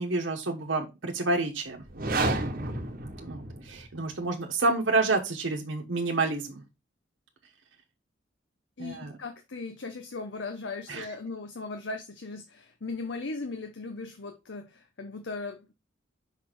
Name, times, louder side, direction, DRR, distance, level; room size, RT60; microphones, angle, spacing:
voice 1, 0.0-1.8 3.2-6.6 8.8-9.2 10.9-11.1, right 3 dB, 80° right, 1.0 m, -29 dB
sound 1, 1.8-4.0, right 2 dB, 50° right, 1.1 m, -31 dB
voice 2, 8.8-15.7, left 3 dB, 70° left, 0.8 m, -38 dB
5.8 x 4.1 x 4.4 m
head